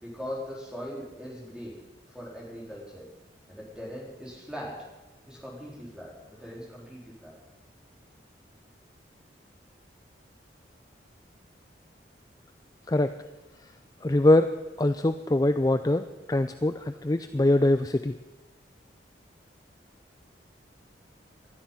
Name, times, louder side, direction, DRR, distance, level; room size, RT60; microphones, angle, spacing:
voice 1, 0.0-1.8 2.1-3.1 3.5-4.7 5.3-7.4, equal, 5° right, -4 dB, 4.2 m, -40 dB
voice 2, 14.0-14.5 14.8-18.1, left 1 dB, 20° left, 10 dB, 0.4 m, -23 dB
19.5 x 13.0 x 5.7 m, 1.1 s
head